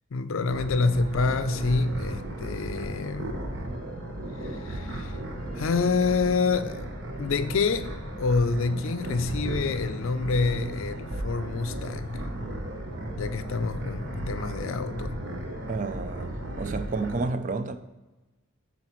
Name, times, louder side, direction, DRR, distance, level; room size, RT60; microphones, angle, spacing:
voice 1, 0.1-3.3 4.4-5.2 5.6-6.9 7.2-12.2 13.2-15.2, left 4 dB, 70° left, 0.4 m, -27 dB
sound 1, 0.5-17.2, left 1 dB, 25° left, 1.4 m, -47 dB
sound 2, 0.5-17.2, right 1 dB, 55° right, 0.8 m, -35 dB
voice 2, 15.7-17.8, right 3 dB, 35° right, 0.4 m, -31 dB
9.8 x 4.1 x 3.0 m
head